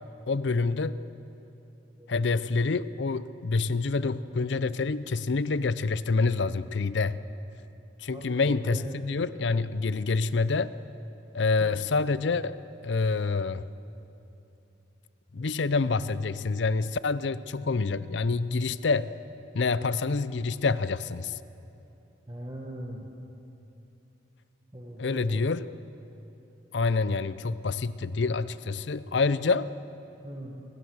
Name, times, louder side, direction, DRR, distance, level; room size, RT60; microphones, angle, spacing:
voice 1, 0.3-1.0 2.1-7.2 8.0-10.7 11.3-12.6 12.8-13.7 15.3-19.1 19.5-21.4 25.0-25.7 26.7-29.7, left 4 dB, 70° left, 16 dB, 0.6 m, -27 dB
voice 2, 8.1-9.0 22.3-23.1 24.7-25.4 30.2-30.5, right 1 dB, 25° right, -3 dB, 1.6 m, -39 dB
23.0 x 19.0 x 6.4 m, 2.8 s
head